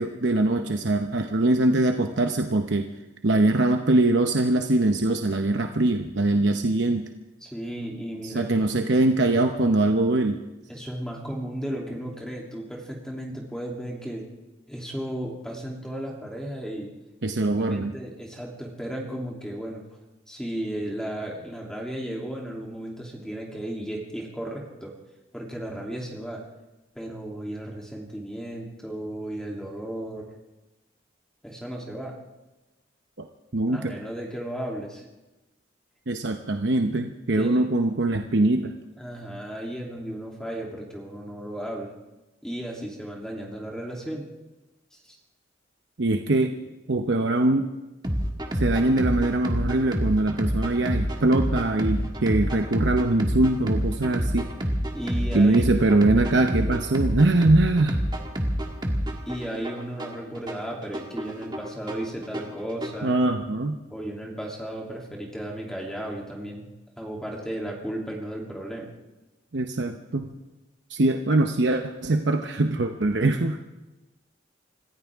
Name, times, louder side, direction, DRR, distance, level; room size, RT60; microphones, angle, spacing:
voice 1, 0.0-2.9 3.2-7.1 8.2-10.4 17.2-17.9 33.2-33.3 33.5-34.0 36.1-38.7 46.0-46.5 46.9-47.7 48.5-54.5 55.3-58.0 63.0-63.8 69.5-70.4 70.9-73.6, right 2 dB, 70° right, 5 dB, 0.9 m, -22 dB
voice 2, 7.4-8.8 10.7-14.2 14.7-16.9 17.6-19.8 20.3-24.9 25.3-26.4 26.9-30.3 31.4-32.1 33.7-35.0 37.3-37.7 39.0-41.9 42.4-44.3 44.9-45.2 54.9-55.7 59.2-63.2 63.9-66.7 67.0-68.9, right 1 dB, 5° left, -2 dB, 3.0 m, -34 dB
sound 1, 48.0-63.1, equal, 25° right, 1.7 m, -28 dB
26.0 x 15.0 x 3.6 m, 1.1 s
head